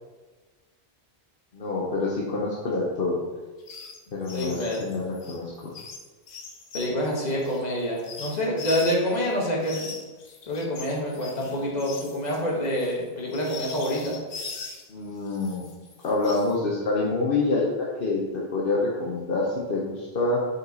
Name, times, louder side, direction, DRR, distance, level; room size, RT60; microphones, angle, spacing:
voice 1, 1.5-3.2 4.1-5.7 14.9-15.7 16.0-18.2 18.5-20.4, left 3 dB, 60° left, -5 dB, 1.1 m, -26 dB
sound 1, 3.6-9.2 9.6-14.9 15.3-16.5, left 4 dB, 85° left, 1.1 m, -40 dB
voice 2, 4.3-4.8 6.7-9.9 10.5-14.2, equal, 40° left, -3 dB, 1.4 m, -27 dB
5.2 x 4.8 x 4.0 m, 1.3 s
omnidirectional pair, 1.1 m